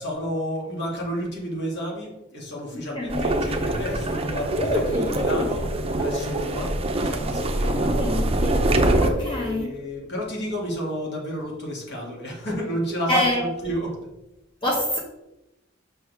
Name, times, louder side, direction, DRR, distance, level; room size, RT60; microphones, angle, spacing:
voice 1, 0.0-5.7 6.0-6.8 7.0-8.3 9.2-14.1, equal, 60° left, -2 dB, 2.3 m, -31 dB
voice 2, 2.7-3.3 4.5-5.5 7.2-8.6 9.0-9.8 13.1-13.5 14.6-15.0, left 1 dB, 25° left, -3 dB, 1.2 m, -27 dB
sound 1, 3.1-9.1, right 1 dB, 30° right, 0.7 m, -24 dB
6.3 x 6.3 x 3.5 m, 0.95 s
head